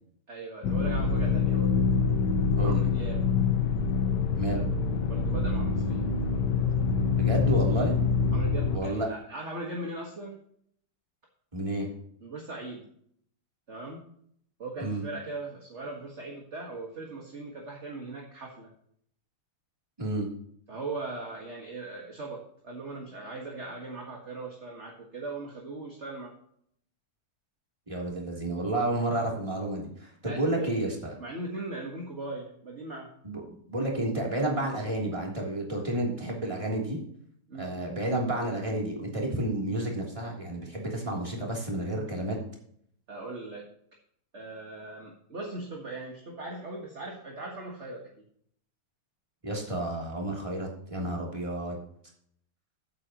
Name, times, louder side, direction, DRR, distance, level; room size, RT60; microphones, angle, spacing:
voice 1, 0.3-1.9 2.6-3.3 5.1-6.1 8.3-10.4 12.2-12.9 13.7-14.0 14.6-18.7 20.7-26.3 30.2-30.9 31.2-33.1 37.5-37.8 43.1-43.7 44.3-48.2, right 2 dB, 40° right, -1 dB, 1.9 m, -39 dB
sound 1, 0.6-8.8, left 5 dB, 80° left, 1.6 m, -25 dB
voice 2, 2.6-2.9 4.3-4.6 7.1-8.0 8.7-9.1 11.5-11.9 14.8-15.0 20.0-20.3 27.9-31.1 33.2-33.4 33.7-37.0 37.6-42.4 49.4-51.8, right 1 dB, 15° right, -2 dB, 3.2 m, -30 dB
14.5 x 8.7 x 3.0 m, 0.66 s
omnidirectional pair, 1.9 m